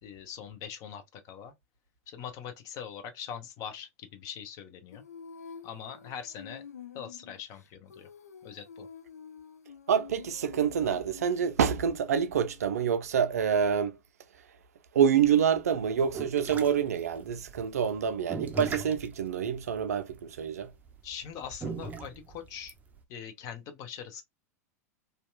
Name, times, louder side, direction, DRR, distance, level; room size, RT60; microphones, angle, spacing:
voice 1, 0.0-1.5 2.1-5.0 5.6-6.6 6.9-8.1 8.4-8.9 21.0-22.7 23.1-24.2, left 8 dB, 45° left, 0.7 m, -42 dB
Female singing, 4.9-12.6, left 6 dB, 80° left, 0.4 m, -48 dB
voice 2, 9.9-14.0 14.9-20.7, right 8 dB, 75° right, 0.4 m, -27 dB
sound 1, 15.2-23.0, right 4 dB, 20° right, 0.5 m, -39 dB
2.8 x 2.3 x 2.2 m
hypercardioid pair, 95°, 8 cm